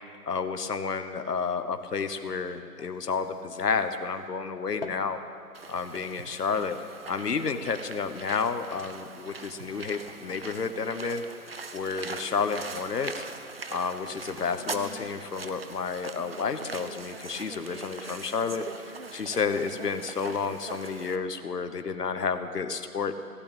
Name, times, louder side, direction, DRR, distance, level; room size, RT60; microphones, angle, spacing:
voice 1, 0.3-5.2 5.7-6.8 7.1-11.2 11.7-13.3 13.7-23.2, left 5 dB, 75° left, 9 dB, 1.2 m, -31 dB
sound 1, 1.8-4.4 4.6-5.2 5.6-5.9 6.6-6.8 7.5-13.4 14.1-16.5 17.1-17.2, left 4 dB, 35° left, 0.9 m, -50 dB
sound 2, 5.5-21.2, right 4 dB, 40° right, 0.6 m, -42 dB
15.5 x 8.6 x 8.9 m, 2.5 s
figure-of-eight pair, 155°, 47 cm